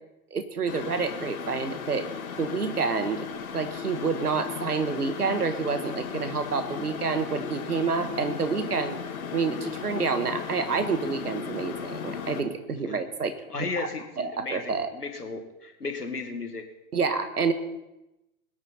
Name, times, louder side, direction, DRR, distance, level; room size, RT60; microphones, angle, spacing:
voice 1, 0.3-2.1 2.4-3.3 3.5-9.0 9.3-13.9 14.2-14.9 16.9-17.5, right 5 dB, 80° right, 9 dB, 1.6 m, -28 dB
sound 1, 0.7-12.4, left 7 dB, 65° left, 1.8 m, -36 dB
voice 2, 13.5-16.7, left 4 dB, 85° left, 5 dB, 2.0 m, -35 dB
21.0 x 8.9 x 4.3 m, 0.94 s
figure-of-eight pair, 105°, 45 cm